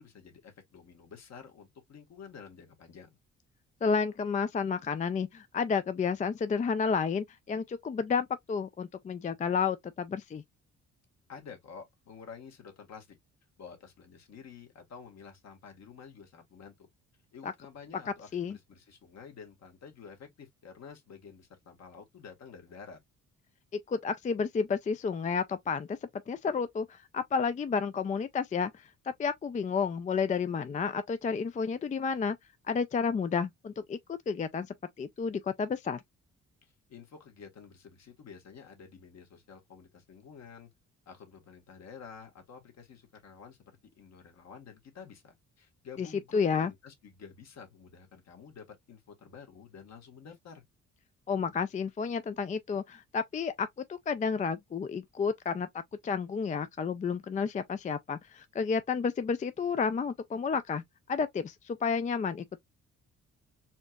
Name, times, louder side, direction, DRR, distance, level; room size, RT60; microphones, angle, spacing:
voice 1, 0.0-3.1 11.3-13.2 13.6-16.9 17.3-23.0 36.6-40.7 41.0-50.6, left 6 dB, 60° left, 1.6 m, -50 dB
voice 2, 3.8-10.4 17.4-17.5 18.3-18.6 23.9-26.0 26.3-28.8 29.2-32.4 32.7-34.7 35.0-36.0 46.0-46.1 46.3-46.7 51.3-55.7 56.0-60.8 61.1-62.4, left 5 dB, 25° left, 0.4 m, -31 dB
4.3 x 2.9 x 2.3 m
cardioid pair, 90°, 30 cm